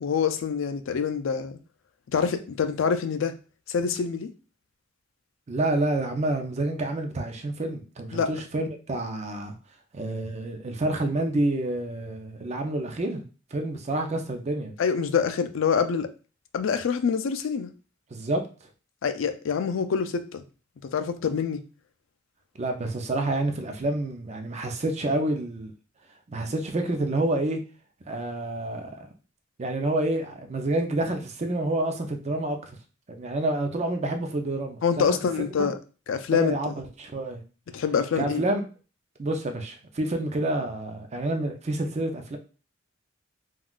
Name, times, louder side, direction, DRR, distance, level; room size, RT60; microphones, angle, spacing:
voice 1, 0.0-1.6 2.1-3.3 3.7-4.3 8.1-8.3 14.8-16.1 16.5-17.7 19.0-20.4 20.9-21.6 34.8-35.8 36.1-36.7 37.7-38.4, left 6 dB, 90° left, 0.4 m, -26 dB
voice 2, 5.5-9.5 9.9-14.7 18.1-18.4 22.6-25.7 26.3-27.6 28.1-29.1 29.6-32.8 33.1-35.2 35.6-35.7 36.3-37.4 38.2-38.6 39.2-42.4, right 2 dB, 35° right, 0.5 m, -28 dB
3.6 x 2.3 x 2.3 m
head